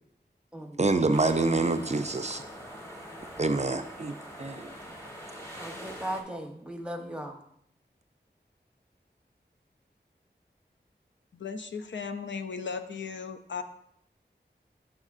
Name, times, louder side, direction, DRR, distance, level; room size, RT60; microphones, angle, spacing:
voice 1, 0.8-2.4 3.4-4.1 4.4-4.7, right 3 dB, 40° right, 8 dB, 0.4 m, -26 dB
sound 1, 1.1-6.2, equal, 15° left, 1.3 m, -44 dB
voice 2, 5.6-7.4, right 1 dB, 5° right, 3 dB, 0.9 m, -37 dB
voice 3, 11.3-13.6, left 5 dB, 85° left, 7 dB, 0.5 m, -36 dB
7.7 x 6.3 x 2.4 m, 0.73 s
wide cardioid pair, 50°, 18 cm